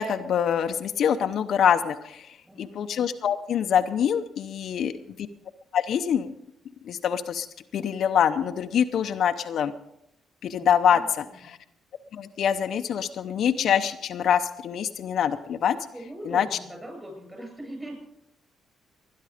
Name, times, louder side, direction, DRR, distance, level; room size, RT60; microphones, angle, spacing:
voice 1, 0.0-2.3 2.6-4.9 5.2-5.3 5.7-6.3 6.9-7.5 7.7-9.7 10.4-11.6 12.1-15.8 16.3-16.4, left 8 dB, 65° left, 8 dB, 0.7 m, -25 dB
voice 2, 2.4-2.8 4.7-5.2 10.6-11.6 15.9-18.1, right 1 dB, 15° right, 2 dB, 7.8 m, -42 dB
19.5 x 10.5 x 5.0 m, 0.80 s
cardioid pair, 90°, 0 cm